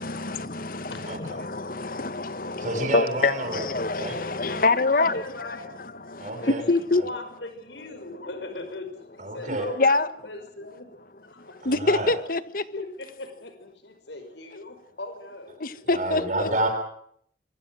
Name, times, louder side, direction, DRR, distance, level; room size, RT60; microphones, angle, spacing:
voice 1, 0.0-7.0 9.4-10.1 11.4-12.7 15.6-16.5, left 3 dB, 50° left, 1.5 m, -26 dB
voice 2, 0.9-1.3 4.4-5.7 6.4-10.9 11.3-11.6 12.7-15.8, left 2 dB, 85° left, 5.6 m, -39 dB
voice 3, 2.6-3.7 4.0-4.2 5.0-5.1 6.2-6.6 9.2-9.7 11.6-12.1 15.9-16.7, right 1 dB, 45° right, 7.2 m, -29 dB
26.0 x 23.5 x 6.4 m
head